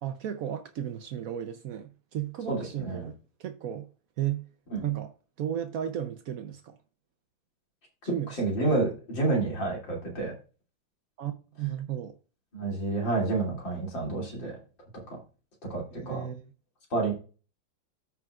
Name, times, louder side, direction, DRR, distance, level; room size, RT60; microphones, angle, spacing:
voice 1, 0.0-3.1 3.4-3.9 4.2-4.5 4.8-5.1 5.4-6.8 8.0-8.3 11.2-12.2 15.9-16.5, right 10 dB, 90° right, 0.7 m, -34 dB
voice 2, 2.5-3.1 4.7-4.8 8.0-10.3 12.5-14.6 15.1-15.2 15.7-16.2 16.9-17.1, right 3 dB, 60° left, 3.4 m, -29 dB
14.0 x 5.0 x 2.4 m
omnidirectional pair, 2.3 m